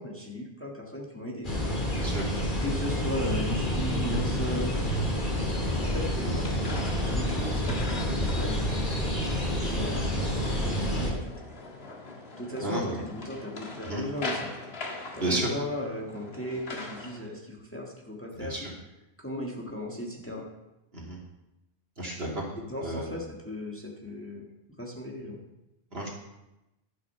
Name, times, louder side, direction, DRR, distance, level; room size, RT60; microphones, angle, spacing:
voice 1, 0.0-1.5 2.6-4.7 5.7-8.6 9.6-11.3 12.4-14.5 15.1-18.5 19.2-20.5 22.6-24.5 24.8-25.4, left 1 dB, 10° left, -2 dB, 1.6 m, -36 dB
sound 1, 1.4-11.1, equal, 50° left, 2.7 m, -28 dB
voice 2, 1.9-2.3 12.6-13.1 13.8-14.0 15.2-15.5 18.3-18.7 20.9-21.2 22.0-22.5 22.8-23.2 25.9-26.1, right 1 dB, 65° right, -3 dB, 2.8 m, -32 dB
sound 2, 6.3-17.2, left 2 dB, 70° left, 1.7 m, -41 dB
12.0 x 6.4 x 5.7 m, 0.94 s
omnidirectional pair, 1.1 m